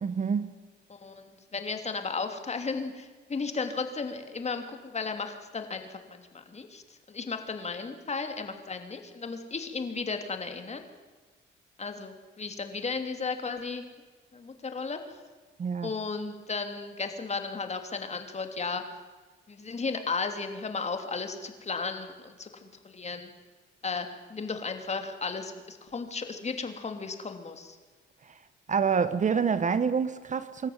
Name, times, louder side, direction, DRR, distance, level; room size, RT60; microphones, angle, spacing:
voice 1, 0.0-0.6 15.6-15.9 28.2-28.4 28.7-30.7, right 6 dB, 40° right, 1.1 m, -27 dB
voice 2, 0.9-6.8 7.1-10.9 11.8-13.8 14.3-15.2 15.8-18.8 19.5-23.3 23.8-27.8, left 4 dB, 35° left, 3.0 m, -35 dB
25.5 x 13.5 x 9.6 m
cardioid pair, 90°, 20 cm